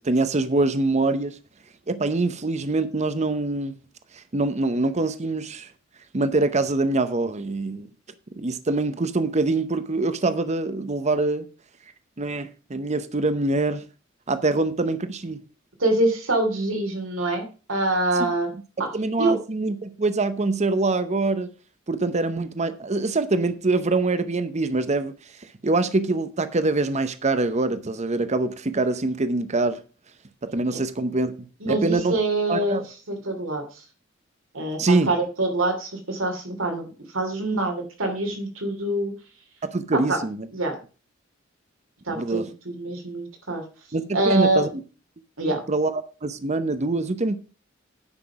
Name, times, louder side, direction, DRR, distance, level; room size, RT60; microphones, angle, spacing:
voice 1, 0.0-1.3 1.9-3.8 4.3-5.7 6.1-7.9 8.4-11.5 12.2-13.8 14.3-15.4 18.9-21.5 21.9-25.1 25.6-29.8 30.5-31.3 31.7-32.1 32.5-32.8 34.8-35.1 39.6-40.5 42.2-42.5 43.9-44.8 45.4-47.4, right 3 dB, 35° right, 0.8 m, -24 dB
voice 2, 15.8-17.4 17.7-18.5 18.8-18.9 19.2-19.4 30.7-30.8 31.6-32.8 33.1-33.6 34.5-39.1 39.9-40.2 40.5-40.7 42.1-43.6 44.1-44.6 45.4-45.6, right 2 dB, 85° right, 3.1 m, -25 dB
9.9 x 5.9 x 5.8 m
head